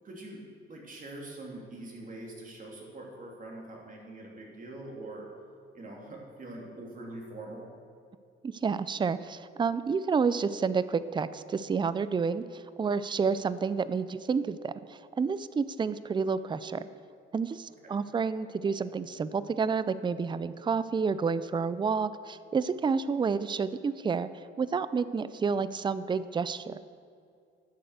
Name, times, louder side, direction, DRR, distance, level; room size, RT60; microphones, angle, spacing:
voice 1, 0.0-0.4 0.7-5.3 5.7-7.7 17.8-18.0, right 2 dB, 40° right, -1 dB, 3.0 m, -43 dB
voice 2, 8.4-16.9 17.3-24.3 24.6-26.8, right 5 dB, 25° right, 15 dB, 0.4 m, -30 dB
11.5 x 7.8 x 6.6 m, 2.4 s
cardioid pair, 90°, 20 cm